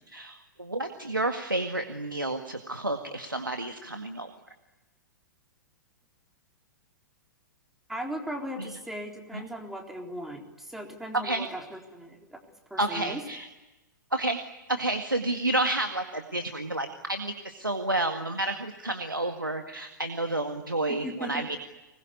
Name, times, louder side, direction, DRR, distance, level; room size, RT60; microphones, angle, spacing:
voice 1, 0.0-4.3 8.6-8.8 9.3-9.5 11.1-11.5 12.8-13.5 14.1-14.4 14.7-21.6, right 2 dB, 90° right, 5 dB, 1.9 m, -30 dB
voice 2, 7.9-12.4 12.7-13.2 21.0-21.5, right 1 dB, 5° right, 2 dB, 4.0 m, -38 dB
25.5 x 21.0 x 9.8 m, 1.1 s
figure-of-eight pair, 105°, 11 cm